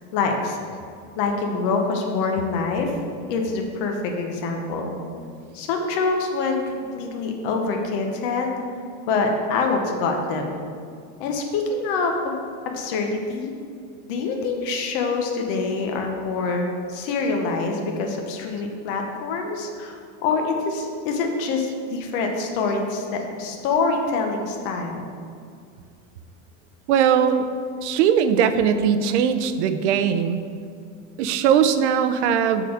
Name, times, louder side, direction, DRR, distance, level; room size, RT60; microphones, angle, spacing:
voice 1, 0.1-0.6 1.2-3.0 3.3-5.0 5.5-8.6 9.0-10.5 11.2-12.4 12.7-13.5 14.1-25.0, left 4 dB, 45° left, 3 dB, 0.9 m, -25 dB
voice 2, 26.9-27.5 27.8-30.4 31.2-32.6, right 8 dB, 75° right, 10 dB, 0.6 m, -20 dB
6.6 x 3.9 x 6.3 m, 2.2 s
supercardioid pair, 175°, 35 cm